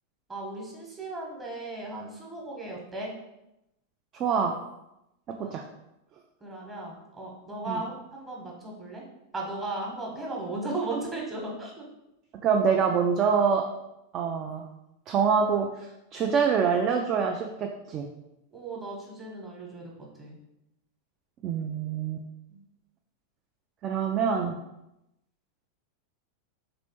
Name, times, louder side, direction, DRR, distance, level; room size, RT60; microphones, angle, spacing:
voice 1, 0.3-3.2 5.4-5.5 6.4-9.0 9.3-11.8 18.5-20.4 22.5-22.6, right 2 dB, 15° right, -2 dB, 1.0 m, -36 dB
voice 2, 4.1-4.6 5.5-5.6 7.7-7.8 12.4-13.6 14.1-14.7 15.1-18.0 21.4-22.2 23.8-24.6, right 6 dB, 35° right, 3 dB, 0.3 m, -25 dB
3.4 x 3.0 x 3.0 m, 0.88 s
figure-of-eight pair, 90°, 0 cm